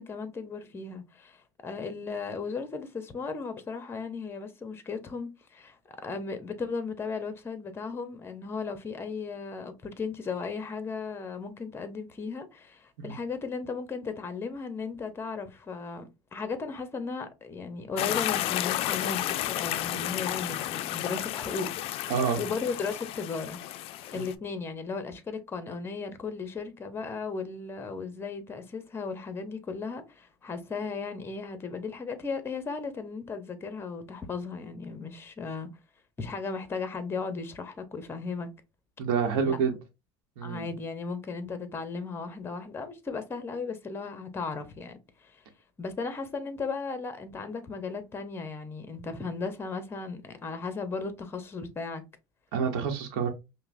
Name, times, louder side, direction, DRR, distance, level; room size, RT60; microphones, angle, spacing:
voice 1, 0.0-21.7 22.4-23.6 24.1-35.7 36.2-38.5 39.5-39.6 40.4-45.4 45.8-52.0, left 4 dB, 20° left, 0.7 m, -36 dB
sound 1, 18.0-24.3, left 14 dB, 55° left, 0.3 m, -32 dB
voice 2, 22.1-22.4 24.1-24.3 39.0-39.8 40.4-40.7 52.5-53.3, right 6 dB, 80° right, 0.9 m, -27 dB
5.4 x 2.1 x 2.5 m
supercardioid pair, 120°, 12 cm